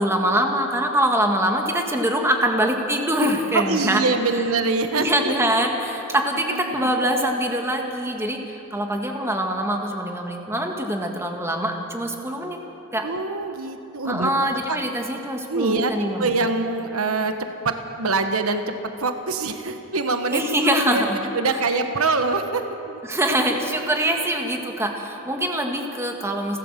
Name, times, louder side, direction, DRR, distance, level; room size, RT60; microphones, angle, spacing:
voice 1, 0.0-4.0 4.3-4.4 5.0-12.6 12.9-13.1 14.1-16.4 20.3-21.2 23.0-26.6, right 1 dB, 10° right, 2 dB, 1.8 m, -23 dB
voice 2, 3.5-5.3 6.5-6.7 13.0-14.3 14.7-14.8 15.5-15.9 16.2-18.7 19.0-20.4 20.8-21.0 21.3-23.0, right 3 dB, 80° right, 7 dB, 1.3 m, -24 dB
29.5 x 12.0 x 7.5 m, 2.9 s
head